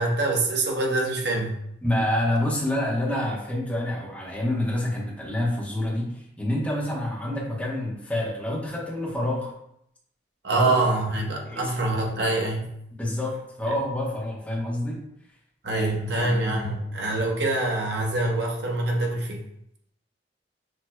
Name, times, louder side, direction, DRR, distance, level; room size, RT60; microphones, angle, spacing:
voice 1, 0.0-1.5 10.4-12.7 15.6-19.4, right 2 dB, 70° right, 0 dB, 0.9 m, -25 dB
voice 2, 1.8-9.5 10.5-10.7 11.5-11.7 13.0-15.0 15.7-15.9 16.1-16.6, left 1 dB, 10° left, -5 dB, 1.0 m, -27 dB
6.2 x 2.9 x 2.2 m, 0.75 s
head